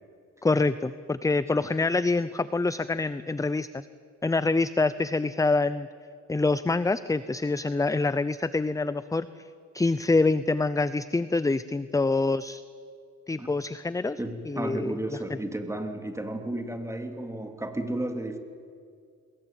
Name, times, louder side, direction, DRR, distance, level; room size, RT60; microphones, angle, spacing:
voice 1, 0.4-3.9 4.2-5.9 6.3-9.4 9.7-12.6 13.3-14.2 14.5-15.4, left 3 dB, 10° left, 15 dB, 0.6 m, -26 dB
voice 2, 14.2-18.4, right 1 dB, 10° right, 5 dB, 3.1 m, -33 dB
27.0 x 21.5 x 9.1 m, 2.2 s
cardioid pair, 90°, 30 cm